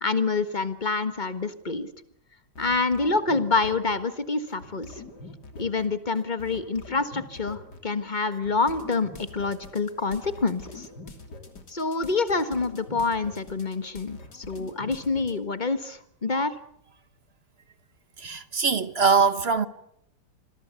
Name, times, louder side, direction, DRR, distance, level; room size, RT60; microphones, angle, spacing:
voice 1, 0.0-1.9 2.6-4.9 5.6-10.9 11.7-16.5, left 4 dB, 30° left, 1.6 m, -27 dB
sound 1, 2.6-4.2 4.5-15.4, left 3 dB, 70° left, 3.6 m, -44 dB
voice 2, 18.2-19.7, right 5 dB, 40° right, 1.2 m, -22 dB
27.0 x 22.0 x 8.4 m
omnidirectional pair, 1.8 m